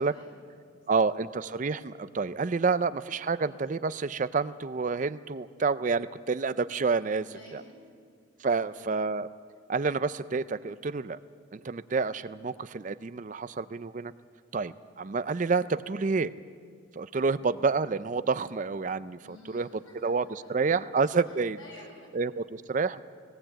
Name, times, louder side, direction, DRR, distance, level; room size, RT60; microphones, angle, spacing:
voice 1, 0.0-1.0 7.3-7.7 8.3-9.0 19.2-20.9 21.2-22.2, left 1 dB, 75° left, -2 dB, 7.6 m, -54 dB
voice 2, 0.9-7.3 8.4-9.3 9.7-11.2 11.5-14.1 14.5-16.3 17.0-19.7 20.0-21.6 22.1-23.0, right 4 dB, 40° right, 15 dB, 0.4 m, -29 dB
18.5 x 18.0 x 8.8 m, 2.1 s
head